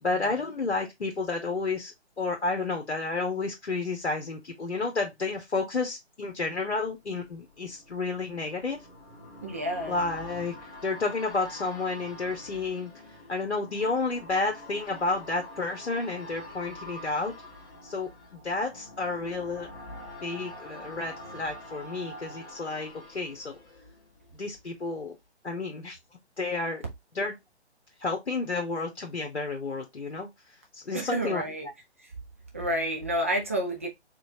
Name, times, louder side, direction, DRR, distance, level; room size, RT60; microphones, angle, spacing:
voice 1, 0.0-8.8 9.9-10.6 10.8-12.9 13.3-17.3 17.8-19.7 20.2-23.6 24.3-25.1 25.4-26.0 26.4-26.8 27.1-27.3 28.0-31.4, left 3 dB, 70° left, 1.1 m, -31 dB
sound 1, 6.9-24.6 25.0-25.1, left 1 dB, 20° left, 1.9 m, -46 dB
voice 2, 9.4-10.0 30.9-31.7 32.0-32.1 32.5-33.9, right 1 dB, 15° right, 0.4 m, -30 dB
4.3 x 3.1 x 2.7 m
figure-of-eight pair, 135°, 34 cm